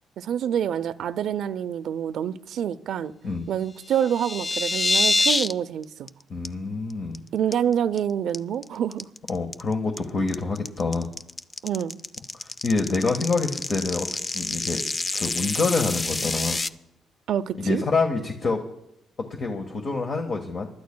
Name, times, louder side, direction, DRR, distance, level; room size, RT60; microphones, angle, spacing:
voice 1, 0.2-3.1 3.5-6.1 7.3-9.1 11.6-12.0 17.3-17.8, right 9 dB, 70° right, 13 dB, 0.5 m, -27 dB
sound 1, 3.9-5.5 5.8-6.1 6.4-6.5 6.9-7.2 7.5-8.0 8.3-16.7, left 3 dB, 30° left, 0.5 m, -27 dB
voice 2, 6.3-7.2 9.3-11.1 12.3-14.1 14.3-14.8 15.1-16.6 17.6-18.6 19.4-20.7, left 3 dB, 45° left, 4 dB, 1.4 m, -26 dB
29.0 x 12.0 x 2.3 m, 0.80 s
cardioid pair, 90°, 0 cm